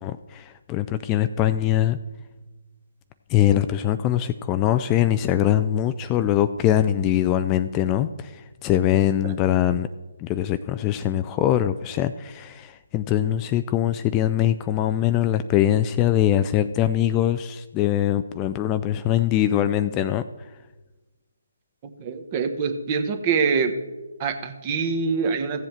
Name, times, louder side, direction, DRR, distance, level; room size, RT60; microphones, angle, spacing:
voice 1, 0.0-2.0 3.3-9.9 10.2-20.2, left 12 dB, 20° left, 11 dB, 0.3 m, -22 dB
voice 2, 22.0-23.8 24.2-25.6, right 5 dB, 30° right, 7 dB, 1.1 m, -24 dB
15.0 x 7.6 x 4.4 m, 1.2 s
figure-of-eight pair, 145°, 0 cm